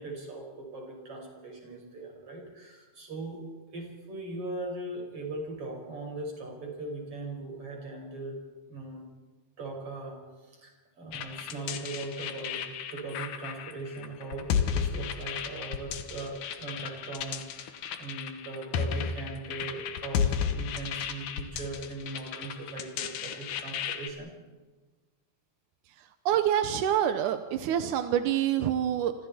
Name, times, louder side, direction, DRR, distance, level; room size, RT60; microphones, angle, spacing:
voice 1, 0.0-3.4 3.7-8.4 8.7-9.1 9.6-10.2 10.5-10.7 11.0-24.3, right 2 dB, 35° right, 1 dB, 6.3 m, -39 dB
sound 1, 11.1-24.1, left 7 dB, 65° left, 2.4 m, -34 dB
voice 2, 25.9-29.1, right 10 dB, 75° right, 8 dB, 1.9 m, -27 dB
28.5 x 26.0 x 4.4 m, 1.3 s
omnidirectional pair, 4.5 m